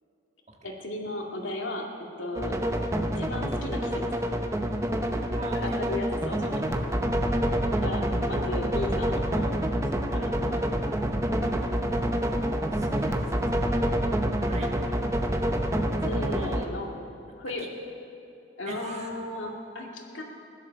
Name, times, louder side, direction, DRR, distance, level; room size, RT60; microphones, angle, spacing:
voice 1, 0.6-1.9 2.2-2.6 3.1-4.0 5.5-6.7 7.8-10.6 16.0-16.9 17.4-17.7 18.6-20.2, left 1 dB, 80° left, 0 dB, 2.2 m, -35 dB
sound 1, 2.4-16.7, equal, 15° right, 0.8 m, -27 dB
voice 2, 5.4-6.0 7.4-7.8 12.7-13.6 14.5-14.7 16.3-16.5 17.6-17.7 18.7-19.1, right 2 dB, 35° right, 0 dB, 1.7 m, -43 dB
16.5 x 11.5 x 6.9 m, 2.7 s
head